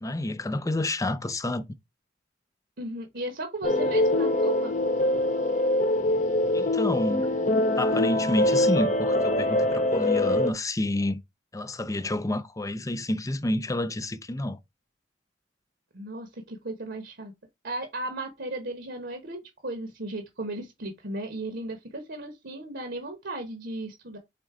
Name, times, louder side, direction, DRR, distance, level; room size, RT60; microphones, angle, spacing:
voice 1, 0.0-1.6 6.5-7.3 7.8-11.2 11.5-14.6, left 1 dB, 15° left, 0.5 m, -29 dB
voice 2, 2.8-4.7 15.9-17.3 17.6-24.2, right 2 dB, 60° right, 1.1 m, -36 dB
sound 1, 3.6-10.5, left 1 dB, 40° left, 0.8 m, -24 dB
5.1 x 3.9 x 4.7 m
head